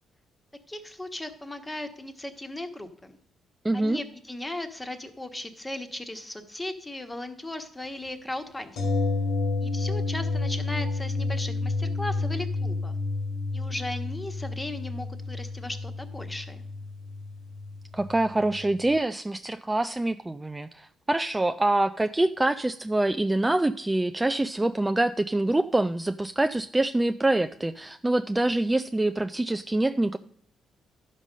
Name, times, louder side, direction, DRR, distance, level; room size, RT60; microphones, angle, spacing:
voice 1, 0.7-3.2 3.7-8.9 9.6-12.9 13.5-16.6, left 1 dB, 15° left, 6 dB, 1.2 m, -37 dB
voice 2, 3.6-4.0 17.9-30.2, right 2 dB, 15° right, 9 dB, 0.3 m, -25 dB
sound 1, 8.8-18.6 18.9-19.0, left 3 dB, 80° left, 2.1 m, -30 dB
11.5 x 5.3 x 6.3 m, 0.64 s
cardioid pair, 90°, 0 cm